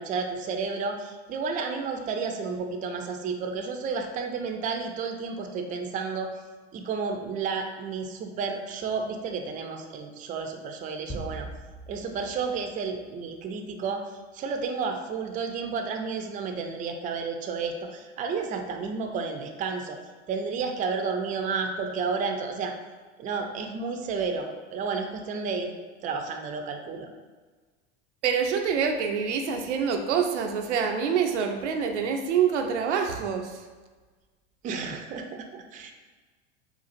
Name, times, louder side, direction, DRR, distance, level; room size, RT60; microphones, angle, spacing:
voice 1, 0.0-6.3 6.7-11.5 11.9-14.0 14.3-20.0 20.3-22.7 23.2-25.7 26.0-27.1 34.6-35.9, right 5 dB, 25° right, 4 dB, 0.4 m, -31 dB
sound 1, 11.1-13.6, right 1 dB, 15° left, 0.7 m, -41 dB
voice 2, 28.2-33.6, right 7 dB, 85° right, 3 dB, 0.5 m, -26 dB
3.9 x 2.4 x 2.5 m, 1.4 s
hypercardioid pair, 85°, 34 cm